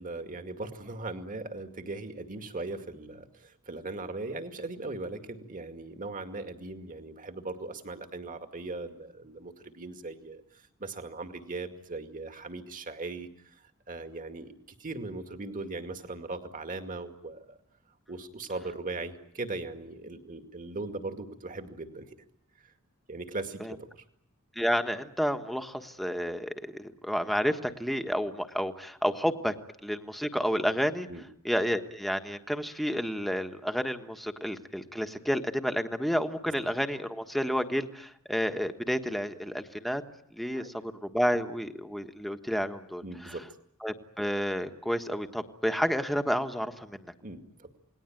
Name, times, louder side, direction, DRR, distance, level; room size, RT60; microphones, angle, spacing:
voice 1, 0.0-17.6 18.1-22.2 22.6-22.7 23.1-24.0 31.1-31.2 40.6-40.7 43.0-43.5 47.2-47.7, right 2 dB, 40° right, 6 dB, 2.2 m, -39 dB
voice 2, 24.5-29.5 29.8-31.1 31.4-40.0 40.3-43.3 43.8-47.1, equal, ahead, 7 dB, 1.4 m, -30 dB
28.5 x 20.0 x 9.2 m, 0.72 s
head